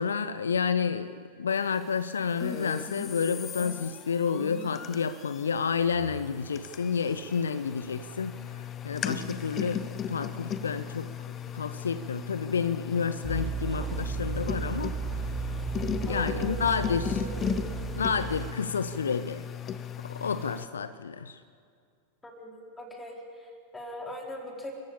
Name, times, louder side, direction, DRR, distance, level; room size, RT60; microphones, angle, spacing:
voice 1, 0.0-11.1 11.5-14.9 16.1-17.2 18.0-19.5 20.0-21.4, left 6 dB, 70° left, 14 dB, 0.7 m, -30 dB
sound 1, 2.4-20.7, left 8 dB, 25° left, 0.9 m, -37 dB
sound 2, 13.2-18.5, right 6 dB, 5° right, 2.9 m, -34 dB
voice 2, 16.1-16.5 16.9-17.9 22.2-24.7, equal, 10° left, 1 dB, 4.6 m, -41 dB
29.5 x 15.0 x 8.8 m, 2.2 s
figure-of-eight pair, 90°, 0 cm